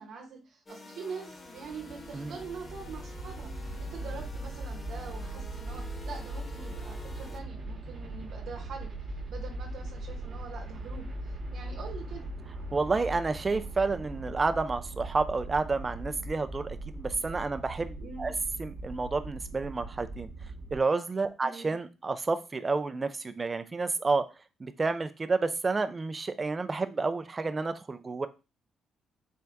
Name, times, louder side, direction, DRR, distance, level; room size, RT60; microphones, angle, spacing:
voice 1, 0.0-8.9 9.3-12.3 18.0-18.3 21.4-21.7, right 5 dB, 75° right, 0 dB, 0.9 m, -44 dB
sound 1, 0.7-7.4, left 3 dB, 35° left, 0.7 m, -48 dB
sound 2, 1.4-20.8, right 1 dB, 45° right, 1.2 m, -40 dB
voice 2, 12.7-18.3 18.6-20.3 20.7-24.2 24.6-28.3, right 3 dB, 30° right, 10 dB, 0.5 m, -30 dB
4.5 x 2.6 x 3.4 m, 0.30 s
cardioid pair, 90°, 0 cm